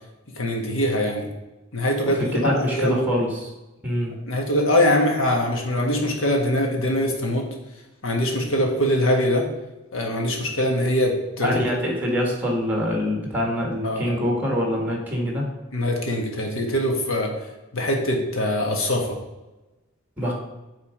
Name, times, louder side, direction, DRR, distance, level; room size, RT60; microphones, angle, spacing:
voice 1, 0.4-1.3 1.7-3.0 4.3-7.5 8.0-9.5 9.9-11.5 13.8-14.1 15.7-17.3 17.7-19.2, left 1 dB, 70° left, 1 dB, 1.6 m, -23 dB
voice 2, 2.0-3.5 3.8-4.2 11.4-15.5 20.2-20.3, equal, 10° right, -1 dB, 1.7 m, -24 dB
9.0 x 3.7 x 4.8 m, 1.1 s
head